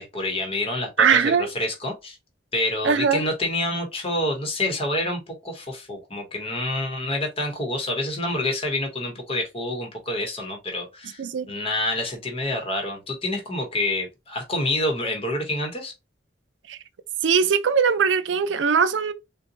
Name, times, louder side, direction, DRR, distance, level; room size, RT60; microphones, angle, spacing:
voice 1, 0.0-2.2 2.5-11.2 11.5-15.9, left 1 dB, 30° left, 0.9 m, -27 dB
voice 2, 1.0-1.5 2.8-3.2 11.2-11.5 16.7-16.8 17.2-19.1, right 6 dB, 85° right, 0.5 m, -20 dB
3.9 x 2.2 x 2.7 m
head